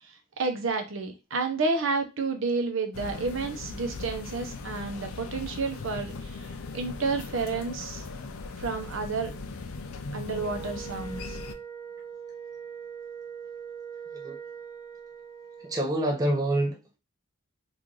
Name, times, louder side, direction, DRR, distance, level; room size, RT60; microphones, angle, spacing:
voice 1, 0.0-6.5 6.7-8.0 8.6-9.3 10.1-11.4, right 4 dB, 65° right, 6 dB, 0.7 m, -30 dB
sound 1, 2.9-11.5, left 3 dB, 85° left, 0.5 m, -39 dB
Wind instrument woodwind instrument, 10.3-15.9, right 7 dB, 20° left, 0.7 m, -42 dB
voice 2, 15.6-17.0, right 1 dB, 15° right, 2 dB, 0.4 m, -27 dB
3.0 x 2.5 x 3.7 m, 0.27 s
head